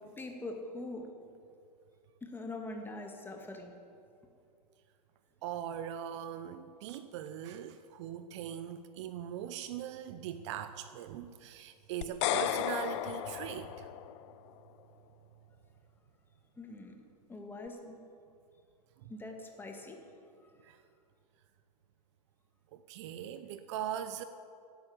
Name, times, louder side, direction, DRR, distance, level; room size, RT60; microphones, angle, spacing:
voice 1, 0.2-1.1 2.2-3.7 16.6-16.9 17.3-18.0 19.1-20.0, left 2 dB, 10° left, 2 dB, 2.1 m, -43 dB
voice 2, 5.4-13.9 19.0-19.1 20.6-20.8 22.7-24.2, right 10 dB, 45° right, 11 dB, 0.7 m, -40 dB
sound 1, 12.0-14.3, left 13 dB, 45° left, 0.7 m, -34 dB
16.5 x 8.7 x 8.7 m, 2.5 s
figure-of-eight pair, 100°, 21 cm